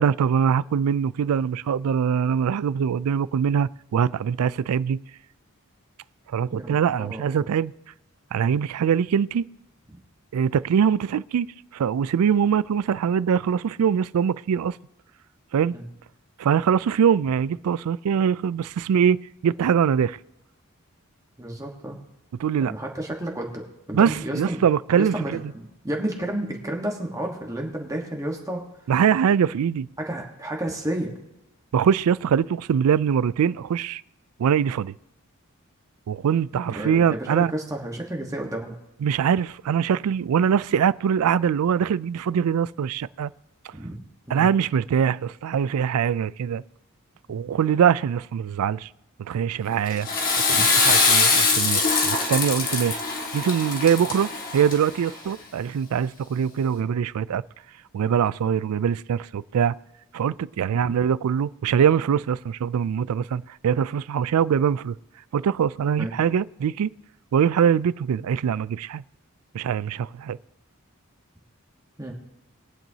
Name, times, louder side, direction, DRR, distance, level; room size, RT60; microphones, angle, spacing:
voice 1, 0.0-5.0 6.3-7.7 8.3-9.4 10.3-11.5 11.7-14.8 15.5-15.7 16.4-20.2 22.4-22.7 23.9-25.4 28.9-29.9 31.7-34.0 34.4-34.9 36.1-37.5 39.0-43.3 44.3-46.6 47.3-48.9 49.2-50.1 50.5-53.0 53.3-57.4 57.9-59.7 60.1-65.0 65.3-66.9 67.3-69.0 69.5-70.4, right 8 dB, 85° right, 0.3 m, -23 dB
voice 2, 6.5-7.2 15.7-15.8 21.4-22.0 22.7-23.6 23.9-24.6 24.9-28.6 30.0-31.1 36.7-38.7 43.7-44.0 44.3-44.5 66.0-66.1 72.0-72.1, right 1 dB, 15° right, 1.3 m, -31 dB
Water / Toilet flush, 49.9-55.1, left 4 dB, 40° left, 1.6 m, -22 dB
21.0 x 9.0 x 2.8 m
head